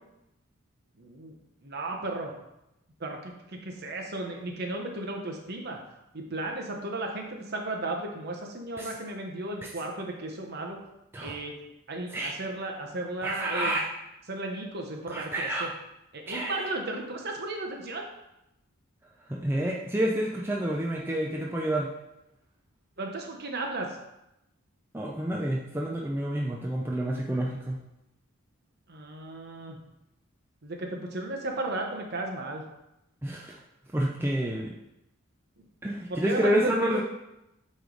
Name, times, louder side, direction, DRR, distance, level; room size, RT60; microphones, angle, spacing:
voice 1, 1.0-1.3 1.6-2.3 3.0-3.3 3.6-5.8 6.1-10.8 11.2-11.5 11.9-13.8 14.3-15.7 16.1-18.0 23.0-23.9 28.9-29.8 30.6-32.6 35.6-35.7 36.1-37.0, right 2 dB, 50° right, 2 dB, 0.9 m, -34 dB
voice 2, 13.2-13.9 15.1-15.7 16.3-16.7 19.3-21.9 24.9-27.8 33.2-33.6 33.9-34.7 35.8-37.0, right 1 dB, 10° right, -2 dB, 0.4 m, -29 dB
8.2 x 3.2 x 3.8 m, 0.88 s
head